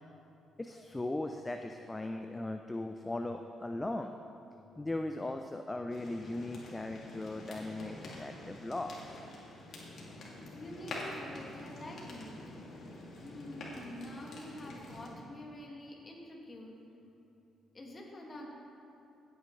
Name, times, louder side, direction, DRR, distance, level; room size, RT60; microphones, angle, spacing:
voice 1, 0.6-4.1 4.8-9.2, left 2 dB, 15° left, 5 dB, 0.5 m, -38 dB
sound 1, 5.9-15.1, left 2 dB, 60° left, 2.5 m, -47 dB
voice 2, 10.6-12.3 13.2-16.8 17.7-18.5, left 1 dB, 30° left, -1 dB, 2.1 m, -46 dB
16.0 x 9.1 x 3.3 m, 2.9 s
cardioid pair, 90°, 0 cm